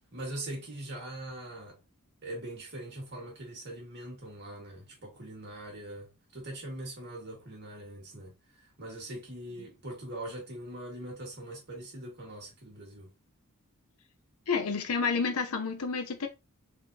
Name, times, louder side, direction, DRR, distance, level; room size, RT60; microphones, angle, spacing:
voice 1, 0.1-1.8 2.2-13.1, right 1 dB, 50° right, 1.8 m, -42 dB
voice 2, 14.5-16.3, left 5 dB, 75° left, 0.7 m, -29 dB
3.9 x 2.7 x 2.7 m
head